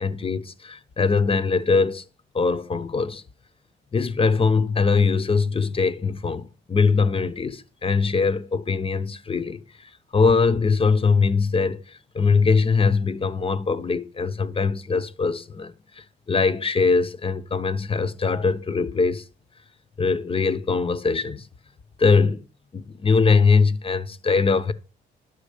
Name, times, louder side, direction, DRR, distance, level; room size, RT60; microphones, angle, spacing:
voice 1, 0.0-2.1 2.3-3.2 3.9-9.6 10.1-19.2 20.0-21.5 22.0-22.5 22.7-24.7, left 4 dB, 25° left, 0.8 m, -22 dB
11.0 x 6.4 x 5.0 m
cardioid pair, 90°, 20 cm